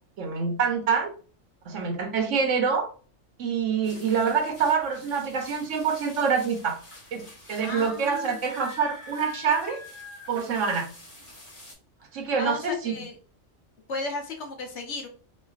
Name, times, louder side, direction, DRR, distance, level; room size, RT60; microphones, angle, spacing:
voice 1, 0.2-1.1 1.7-2.9 3.4-6.8 7.1-9.8 10.3-10.9 12.1-12.9, right 6 dB, 75° right, 4 dB, 1.1 m, -26 dB
sound 1, 3.8-11.7, left 2 dB, 40° left, 1.5 m, -46 dB
voice 2, 7.6-8.4 12.2-13.2 13.9-15.1, left 2 dB, 65° left, 3 dB, 1.1 m, -34 dB
4.2 x 2.5 x 2.4 m, 0.38 s
omnidirectional pair, 1.3 m